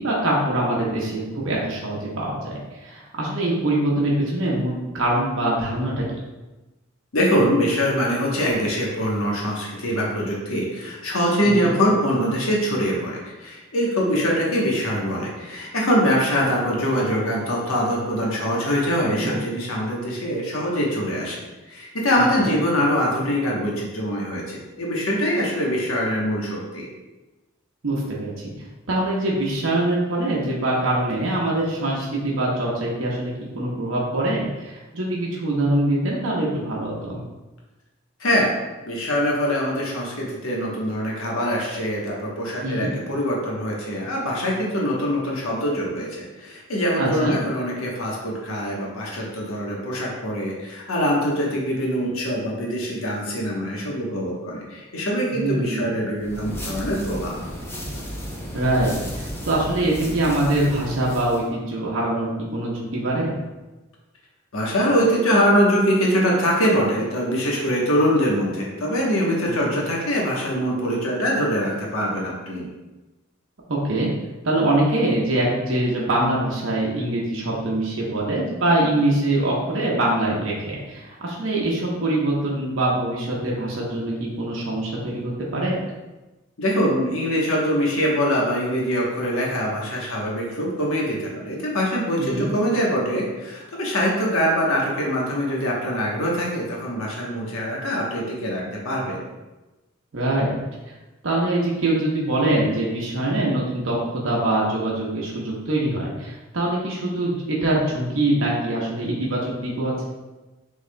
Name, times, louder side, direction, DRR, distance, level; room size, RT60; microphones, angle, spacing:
voice 1, 0.0-6.0 11.4-11.7 19.1-19.3 22.4-22.5 27.8-28.5 28.9-37.2 42.6-42.9 47.0-47.4 55.3-55.9 58.5-63.4 69.5-69.7 73.7-74.1 74.4-85.7 92.2-92.5 100.1-100.6 100.9-101.0 101.2-104.0 104.2-110.0, right 1 dB, 70° right, -4 dB, 0.9 m, -24 dB
voice 2, 7.1-26.8 38.2-38.5 38.9-57.4 64.5-72.7 86.6-99.2, equal, 85° left, -3 dB, 1.1 m, -23 dB
sound 1, 56.2-61.5, equal, 10° left, 0.6 m, -34 dB
6.4 x 3.5 x 2.2 m, 1.1 s
head